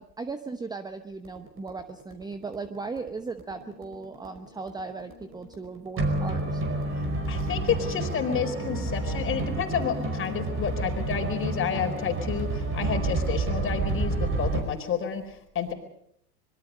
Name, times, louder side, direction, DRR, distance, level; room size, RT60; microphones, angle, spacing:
voice 1, 0.0-6.6, right 4 dB, 10° right, 10 dB, 0.9 m, -37 dB
sound 1, 1.2-14.6, right 2 dB, 25° right, 5.0 m, -30 dB
voice 2, 7.3-15.7, left 7 dB, 25° left, 6 dB, 4.4 m, -30 dB
25.5 x 22.5 x 5.4 m, 0.72 s
hypercardioid pair, 100°, 48 cm